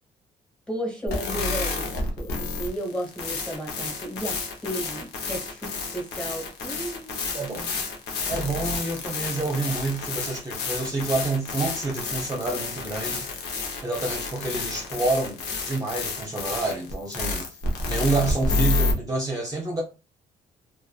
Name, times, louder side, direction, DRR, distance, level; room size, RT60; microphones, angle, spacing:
voice 1, 0.7-7.3, equal, 5° left, 1 dB, 1.4 m, -34 dB
sound 1, 1.1-18.9, left 3 dB, 85° left, 0.8 m, -30 dB
voice 2, 7.3-7.7 8.3-13.3 13.8-17.4 17.9-19.8, right 3 dB, 20° right, -1 dB, 0.7 m, -28 dB
2.4 x 2.3 x 2.4 m, 0.30 s
cardioid pair, 85°, 17 cm